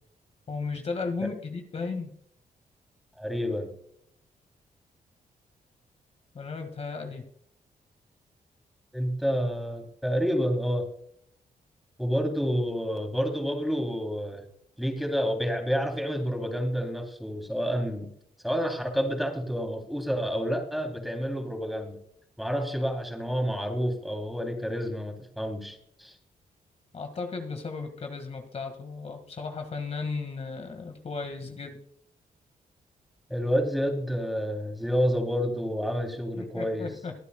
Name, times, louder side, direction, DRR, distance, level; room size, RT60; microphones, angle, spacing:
voice 1, 0.5-2.1 6.3-7.3 26.9-31.8 36.4-37.1, left 4 dB, 45° left, 5 dB, 1.7 m, -35 dB
voice 2, 3.2-3.7 8.9-10.9 12.0-14.4 14.8-18.1 18.4-22.0 22.4-26.2 33.3-36.9, equal, ahead, 4 dB, 2.9 m, -29 dB
23.0 x 8.2 x 2.2 m, 0.66 s
cardioid pair, 90°, 15 cm